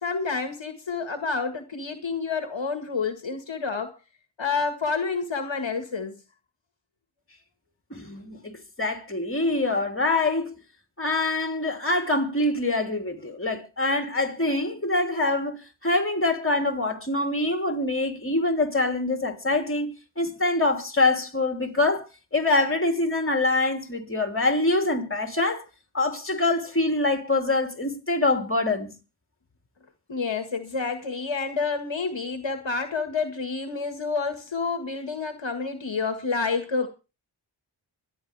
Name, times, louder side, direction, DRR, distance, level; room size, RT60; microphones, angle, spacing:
voice 1, 0.0-4.0 4.4-6.2 30.1-36.9, left 4 dB, 65° left, 1.7 m, -29 dB
voice 2, 7.9-10.5 11.0-22.1 22.3-25.6 25.9-28.9, left 2 dB, 25° left, 3.0 m, -25 dB
25.0 x 9.8 x 3.4 m
wide cardioid pair, 50°, 49 cm